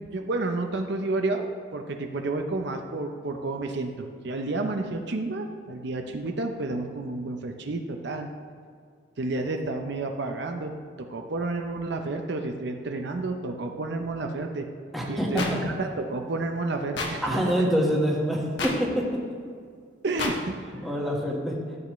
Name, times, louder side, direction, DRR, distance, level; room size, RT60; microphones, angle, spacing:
voice 1, 0.0-8.3 9.2-14.7 15.1-17.3 20.0-20.6, right 2 dB, 60° right, 4 dB, 0.7 m, -30 dB
voice 2, 14.9-15.6 17.2-19.0 20.7-21.5, equal, ahead, -3 dB, 1.4 m, -26 dB
sound 1, 15.4-15.5 17.0-17.1 18.6-18.7 20.2-20.3, left 3 dB, 65° left, 1.3 m, -28 dB
13.5 x 8.3 x 3.1 m, 2.1 s
head